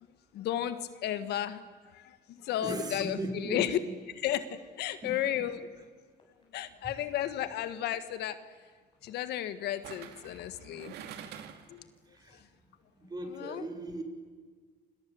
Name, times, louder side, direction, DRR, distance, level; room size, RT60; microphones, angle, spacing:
voice 1, 0.3-1.7 1.9-2.2 2.4-3.8 4.2-5.6 6.5-8.4 9.0-10.9 11.7-11.8 13.3-13.7, left 11 dB, 75° left, 11 dB, 1.6 m, -33 dB
voice 2, 2.6-3.9 5.0-5.6 12.1-12.4 13.0-14.0, right 2 dB, 25° right, 3 dB, 4.9 m, -39 dB
sound 1, 4.6-4.7 5.5-5.6 6.2-6.4 7.2-7.4 8.2-8.3 8.9-11.0 11.6-12.4, left 5 dB, 30° left, 7.6 m, -66 dB
sound 2, 7.2-7.5 9.8-11.8 12.1-12.2, right 9 dB, 75° right, 2.8 m, -46 dB
28.5 x 26.0 x 7.9 m, 1.6 s
cardioid pair, 110°, 17 cm